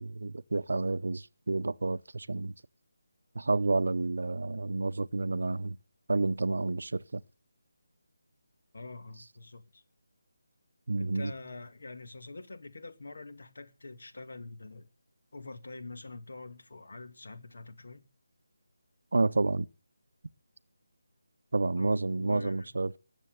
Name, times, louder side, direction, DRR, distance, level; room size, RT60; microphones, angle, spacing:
voice 1, 0.0-2.5 3.3-5.8 6.1-7.2 10.9-11.3 19.1-19.7 21.5-23.0, right 3 dB, 65° right, 0.6 m, -30 dB
voice 2, 8.7-9.8 11.0-14.9 15.3-18.0 21.8-22.7, left 3 dB, 55° left, 2.1 m, -45 dB
19.0 x 7.4 x 7.9 m
figure-of-eight pair, 180°, 0 cm